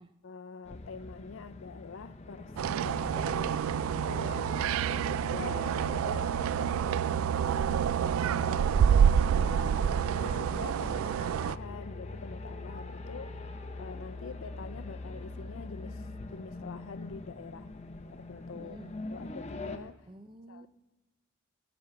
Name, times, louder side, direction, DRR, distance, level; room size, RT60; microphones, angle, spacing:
voice 1, 0.2-3.5 4.0-4.5 4.9-6.9 7.5-13.4 13.8-17.7 18.1-18.8 19.1-20.1 20.5-20.7, left 5 dB, 70° left, 0.5 m, -45 dB
sound 1, 0.6-19.8, left 2 dB, 30° left, 0.6 m, -46 dB
sound 2, 2.6-11.6, right 8 dB, 85° right, 0.3 m, -28 dB
sound 3, 2.8-16.3, left 2 dB, ahead, 3.1 m, -43 dB
voice 2, 4.3-4.7 10.8-11.4 18.5-18.9 20.1-20.7, right 2 dB, 25° right, 0.6 m, -50 dB
15.5 x 6.1 x 6.9 m
head